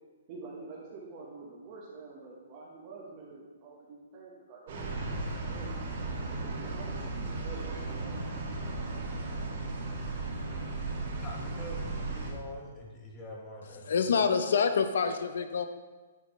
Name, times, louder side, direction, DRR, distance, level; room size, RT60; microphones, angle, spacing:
voice 1, 0.3-5.7 6.2-8.1, right 3 dB, 30° right, -5 dB, 1.1 m, -47 dB
sound 1, 4.7-12.3, right 3 dB, 50° right, 2.2 m, -36 dB
voice 2, 11.2-14.1, left 1 dB, 15° left, -1 dB, 1.1 m, -45 dB
voice 3, 13.9-15.7, left 6 dB, 65° left, 9 dB, 0.6 m, -26 dB
9.0 x 6.0 x 3.1 m, 1.3 s
hypercardioid pair, 170°, 0 cm